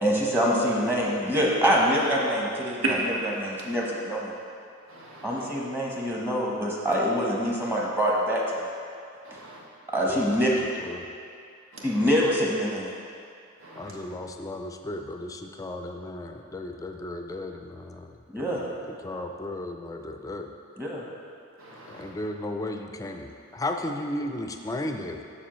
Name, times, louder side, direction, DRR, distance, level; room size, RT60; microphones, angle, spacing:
voice 1, 0.0-2.8 3.4-4.3 5.2-8.4 9.9-10.5 11.8-12.9 18.3-18.6 20.8-21.0, equal, 10° right, -4 dB, 1.0 m, -25 dB
voice 2, 2.8-3.5 3.7-4.0 4.9-5.5 9.2-9.6 9.9-10.2 11.7-12.2 13.6-14.1 18.5-18.7 21.6-22.1, right 2 dB, 75° right, -3 dB, 1.2 m, -35 dB
voice 3, 10.1-11.0 13.8-20.5 21.9-25.2, left 1 dB, 15° left, 4 dB, 0.4 m, -35 dB
7.1 x 6.9 x 3.1 m, 2.4 s
head